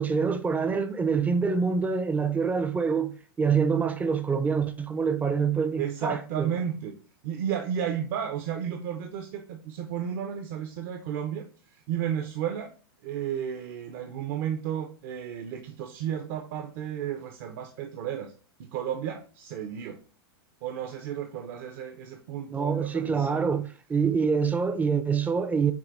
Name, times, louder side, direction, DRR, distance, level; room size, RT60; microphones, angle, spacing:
voice 1, 0.0-6.5 22.5-25.7, right 5 dB, 10° right, 0.4 m, -26 dB
voice 2, 5.8-7.0 7.2-12.7 13.0-18.3 18.6-20.0 20.6-23.4, right 9 dB, 55° right, 0.6 m, -33 dB
7.1 x 2.5 x 2.4 m
hypercardioid pair, 125°, 13 cm